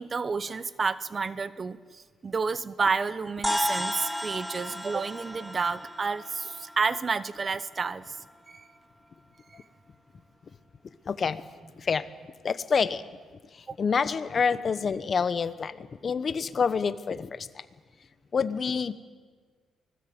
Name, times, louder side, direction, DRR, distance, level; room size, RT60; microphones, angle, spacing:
voice 1, 0.0-8.2 8.5-8.7 13.7-13.8, right 4 dB, 35° right, 15 dB, 0.8 m, -30 dB
sound 1, 3.4-8.0, equal, ahead, 0.9 m, -34 dB
voice 2, 11.1-11.4 11.8-12.1 12.4-13.0 13.8-17.5 18.3-18.9, left 6 dB, 45° left, 14 dB, 1.1 m, -27 dB
24.5 x 19.5 x 8.0 m, 1.5 s
cardioid pair, 90°, 0 cm